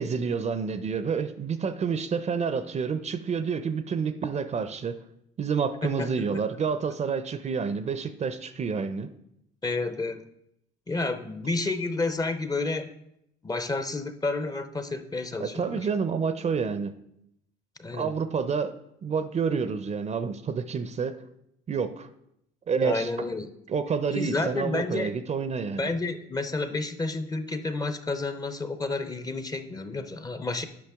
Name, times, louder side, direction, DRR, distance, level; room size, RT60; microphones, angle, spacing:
voice 1, 0.0-5.0 5.4-9.1 15.4-16.9 17.9-18.7 19.0-21.2 21.7-22.1 22.7-23.1 23.7-25.9, right 5 dB, 35° right, 11 dB, 0.5 m, -28 dB
voice 2, 5.8-6.4 9.6-10.2 10.9-13.0 13.4-15.9 17.8-18.1 22.8-23.5 24.1-25.1 25.8-30.6, left 3 dB, 20° left, 10 dB, 0.6 m, -30 dB
8.4 x 5.5 x 3.5 m, 0.77 s
supercardioid pair, 75°, 20 cm